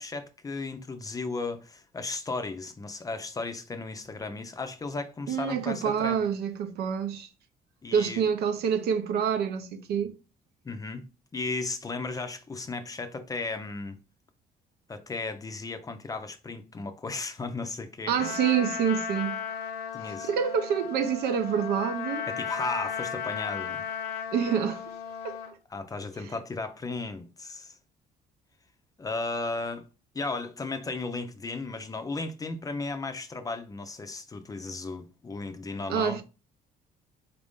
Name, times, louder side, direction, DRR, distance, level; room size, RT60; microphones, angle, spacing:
voice 1, 0.0-6.2 7.8-8.2 10.6-11.1 11.3-14.0 14.9-18.3 19.9-20.3 22.3-23.8 25.7-27.8 29.0-29.8 30.1-36.2, left 3 dB, 20° left, 0.5 m, -35 dB
voice 2, 5.3-7.3 7.9-10.1 18.1-19.4 20.0-22.3 24.3-24.9 25.2-25.4 26.2-26.3 35.9-36.2, right 7 dB, 75° right, 0.6 m, -27 dB
Trumpet, 18.2-25.5, left 7 dB, 75° left, 0.7 m, -35 dB
4.1 x 2.6 x 3.5 m
cardioid pair, 110°, 17 cm